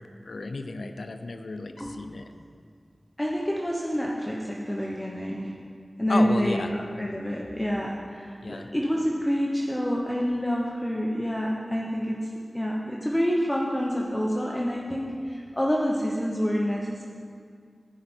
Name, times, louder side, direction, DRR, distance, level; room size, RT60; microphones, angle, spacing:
voice 1, 0.0-2.3 6.1-6.7 8.4-8.7, left 3 dB, 80° left, 8 dB, 0.5 m, -33 dB
voice 2, 3.2-5.5 6.0-12.2 12.5-17.1, equal, 15° left, -3 dB, 1.0 m, -27 dB
15.0 x 5.2 x 4.4 m, 2.2 s
cardioid pair, 40°, 0 cm